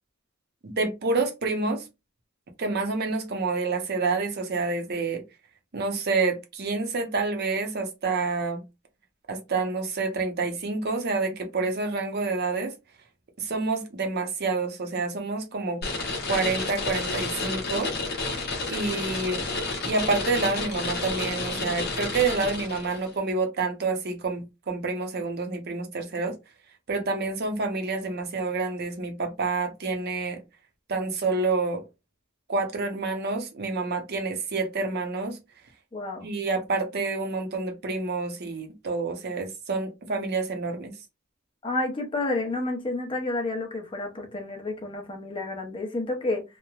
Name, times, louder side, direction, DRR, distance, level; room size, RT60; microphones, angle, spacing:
voice 1, 0.6-1.9 2.6-5.2 5.7-8.6 9.3-12.7 13.4-15.8 16.3-17.9 18.7-19.4 19.8-26.4 26.9-30.4 30.9-31.8 32.5-35.4 36.2-40.9, right 3 dB, 50° right, 0.7 m, -28 dB
sound 1, 15.8-23.1, left 3 dB, 50° left, 0.9 m, -30 dB
voice 2, 35.9-36.3 41.6-46.4, left 2 dB, 25° left, 0.7 m, -30 dB
3.0 x 2.1 x 2.3 m
head